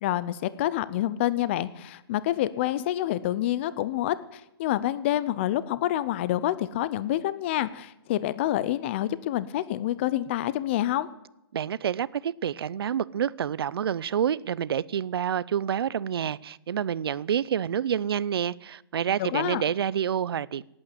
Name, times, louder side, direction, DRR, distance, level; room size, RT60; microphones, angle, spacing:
voice 1, 0.0-11.1 19.2-19.6, left 13 dB, 30° left, 0.5 m, -27 dB
voice 2, 11.5-20.6, right 9 dB, 70° right, 0.6 m, -28 dB
17.5 x 8.8 x 9.2 m
hypercardioid pair, 165°, 13 cm